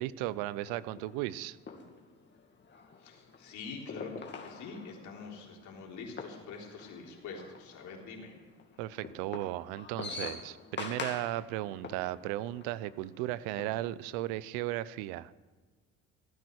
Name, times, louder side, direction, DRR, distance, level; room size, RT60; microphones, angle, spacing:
voice 1, 0.0-1.6 8.8-15.3, right 15 dB, 90° right, 19 dB, 0.6 m, -35 dB
sound 1, 0.6-14.2, left 5 dB, 35° left, 2.3 m, -46 dB
voice 2, 3.0-8.4, left 4 dB, 70° left, 0 dB, 3.7 m, -45 dB
16.5 x 9.5 x 6.4 m, 1.4 s
supercardioid pair, 85°, 31 cm